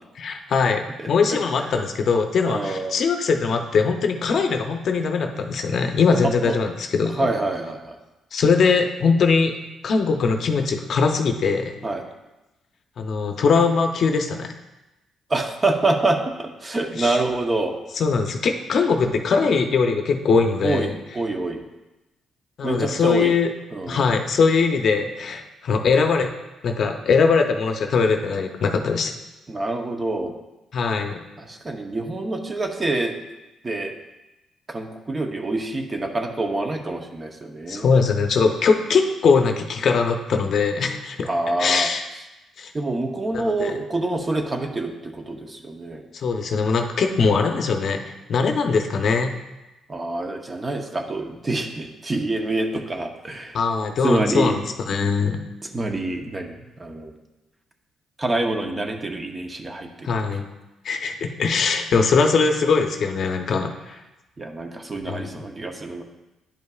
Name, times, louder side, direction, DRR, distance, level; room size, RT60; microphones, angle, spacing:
voice 1, 0.2-7.3 8.3-9.5 9.8-11.8 13.0-14.6 17.0-17.2 18.0-21.0 22.6-23.5 23.9-26.3 26.6-29.1 30.7-31.2 37.7-41.3 41.6-42.0 42.6-42.7 43.3-43.7 46.1-49.4 53.5-55.4 60.0-60.4 60.8-63.9 65.1-65.3, left 5 dB, 60° left, 5 dB, 0.6 m, -21 dB
voice 2, 1.0-1.4 2.5-3.0 6.4-6.5 7.2-8.0 11.8-12.0 15.3-17.7 20.6-21.6 22.6-23.3 23.7-24.0 29.5-30.3 31.4-33.2 33.6-33.9 34.7-37.9 41.2-41.9 42.7-46.0 49.9-53.6 54.0-54.6 55.7-57.1 58.2-60.1 64.4-66.0, right 2 dB, 25° right, 4 dB, 0.8 m, -26 dB
10.5 x 5.3 x 2.3 m, 1.0 s
cardioid pair, 90°, 0 cm